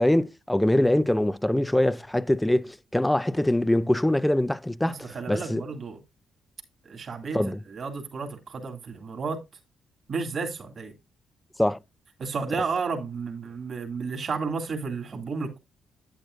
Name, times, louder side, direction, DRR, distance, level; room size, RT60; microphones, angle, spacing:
voice 1, 0.0-5.6 7.3-7.6 11.6-11.8, left 1 dB, 5° left, 0.5 m, -23 dB
voice 2, 4.9-6.0 6.8-7.4 7.7-9.4 10.1-10.9 12.2-15.6, right 4 dB, 50° right, 2.6 m, -32 dB
10.0 x 9.0 x 2.6 m
cardioid pair, 90°, 0 cm